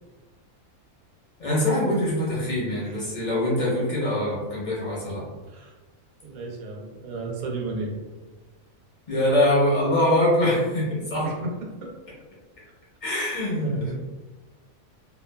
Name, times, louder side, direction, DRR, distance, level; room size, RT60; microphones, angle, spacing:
voice 1, 1.4-5.2 9.1-11.3 13.0-13.9, left 1 dB, 40° left, -7 dB, 0.8 m, -23 dB
voice 2, 6.2-8.0 11.2-11.5 11.8-11.9 13.6-13.9, right 3 dB, 90° right, 0 dB, 1.1 m, -33 dB
2.7 x 2.2 x 2.2 m, 1.2 s
omnidirectional pair, 1.5 m